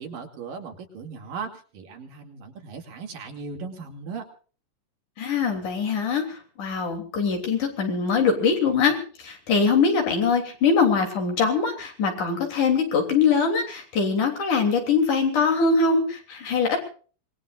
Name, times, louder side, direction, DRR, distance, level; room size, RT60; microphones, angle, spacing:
voice 1, 0.0-4.3, right 5 dB, 70° right, 3 dB, 4.3 m, -37 dB
voice 2, 5.2-16.8, left 5 dB, 60° left, 4 dB, 4.7 m, -22 dB
26.0 x 20.5 x 2.6 m, 0.41 s
omnidirectional pair, 4.0 m